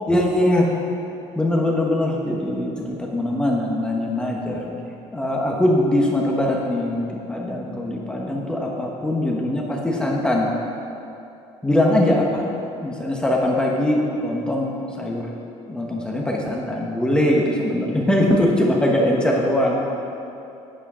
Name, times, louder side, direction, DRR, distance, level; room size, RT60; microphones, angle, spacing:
voice 1, 0.1-0.7 1.3-10.5 11.6-12.5 12.8-15.3 15.7-19.9, left 1 dB, 5° left, -2 dB, 1.1 m, -21 dB
8.7 x 8.5 x 5.5 m, 2.8 s
cardioid pair, 140°, 12 cm